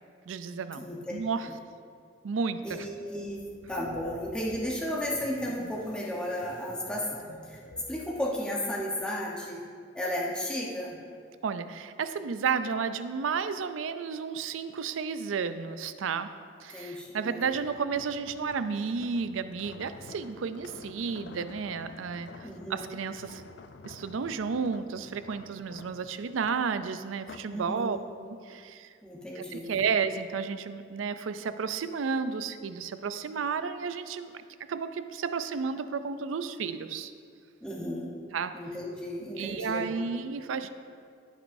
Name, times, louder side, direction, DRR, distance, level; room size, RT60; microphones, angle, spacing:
voice 1, 0.3-1.5 2.2-2.9 11.4-16.3 16.6-23.4 23.8-28.0 28.5-28.9 29.4-34.4 34.7-37.1 38.3-38.6 39.4-40.7, right 5 dB, 90° right, 11 dB, 0.4 m, -32 dB
voice 2, 2.6-7.6 7.9-9.6 9.9-11.0 16.7-17.5 22.4-23.0 27.5-28.0 29.0-29.9 37.6-38.2 38.5-40.1, left 1 dB, 5° left, -5 dB, 1.0 m, -34 dB
sound 1, 3.0-8.1, left 1 dB, 85° left, 1.0 m, -49 dB
sound 2, 17.5-27.6 28.1-28.3, left 3 dB, 60° left, 0.4 m, -49 dB
15.5 x 6.2 x 2.7 m, 2.2 s
head